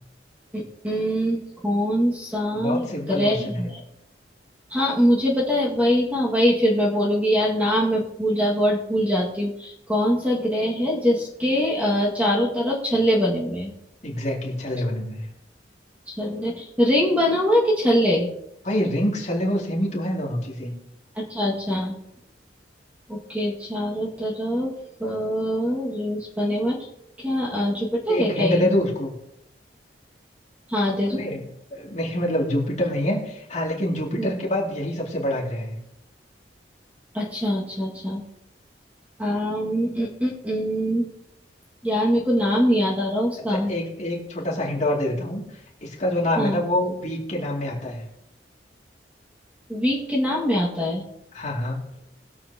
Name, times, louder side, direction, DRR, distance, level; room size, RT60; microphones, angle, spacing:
voice 1, 0.5-3.8 4.7-13.7 16.2-18.3 21.2-22.0 23.1-24.7 25.0-26.9 27.2-28.7 30.7-31.2 34.2-34.3 37.1-38.2 39.2-41.1 41.8-43.7 46.4-46.6 49.7-51.1, equal, 10° right, -4 dB, 1.9 m, -23 dB
voice 2, 2.5-3.7 14.0-15.3 18.6-20.7 28.1-29.1 31.1-35.8 43.5-48.0 51.3-51.9, left 1 dB, 40° left, -3 dB, 2.5 m, -26 dB
20.5 x 7.5 x 2.9 m, 0.82 s
head